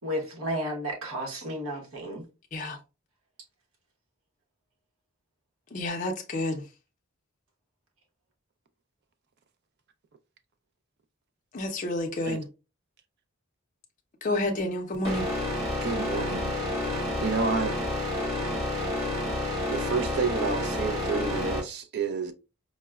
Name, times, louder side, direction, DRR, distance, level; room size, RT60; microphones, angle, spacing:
voice 1, 0.0-2.3, equal, 80° right, 1.0 m, -32 dB
voice 2, 5.7-6.6 11.5-12.4 14.2-15.3, left 1 dB, 35° left, 0.5 m, -29 dB
sound 1, 15.0-21.6, left 1 dB, 30° right, 1.7 m, -29 dB
voice 3, 15.8-16.6 17.2-17.8 19.7-22.3, right 5 dB, 50° right, 0.4 m, -30 dB
4.5 x 2.1 x 2.2 m
head